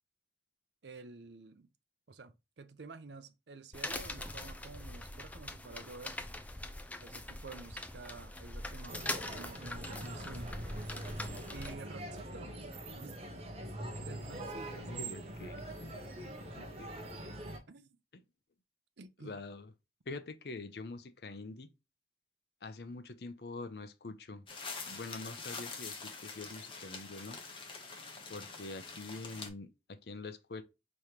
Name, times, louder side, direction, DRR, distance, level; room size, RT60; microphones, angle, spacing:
voice 1, 0.8-1.7 2.1-6.2 7.0-10.6 11.5-12.6 12.9-13.2 14.0-14.9 17.7-18.0 19.0-19.4, right 3 dB, 75° right, 0.6 m, -50 dB
sound 1, 3.7-11.7, left 2 dB, 10° left, 0.4 m, -42 dB
sound 2, 8.9-17.6, right 1 dB, 35° right, 1.0 m, -43 dB
voice 2, 14.4-15.6 16.5-17.2 19.2-19.7 20.1-21.7 22.6-24.4 24.9-27.4 28.3-30.6, left 3 dB, 60° left, 0.7 m, -45 dB
sound 3, 24.5-29.5, left 4 dB, 30° left, 0.9 m, -45 dB
5.0 x 3.1 x 2.8 m
head